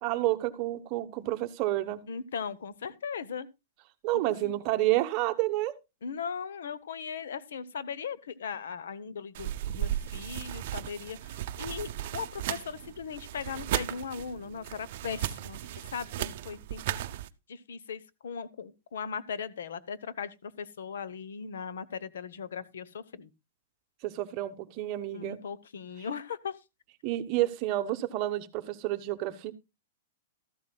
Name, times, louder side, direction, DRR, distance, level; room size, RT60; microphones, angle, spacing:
voice 1, 0.0-2.0 4.0-5.7 24.0-25.4 27.0-29.5, right 15 dB, 35° right, 1.0 m, -29 dB
voice 2, 2.1-3.5 4.1-4.5 6.0-17.0 17.5-23.3 25.1-26.6, left 6 dB, 85° left, 0.9 m, -38 dB
sound 1, 9.3-17.3, right 12 dB, 50° right, 0.7 m, -36 dB
13.5 x 12.0 x 2.3 m
supercardioid pair, 160°, 0 cm